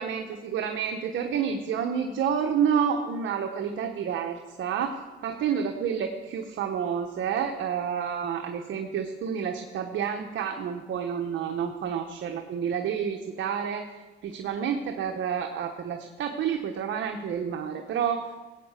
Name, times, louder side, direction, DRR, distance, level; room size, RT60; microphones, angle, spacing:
voice 1, 0.0-13.8 14.2-18.4, right 7 dB, 75° right, 4 dB, 1.2 m, -29 dB
17.5 x 8.4 x 6.6 m, 1.2 s
cardioid pair, 90°, 20 cm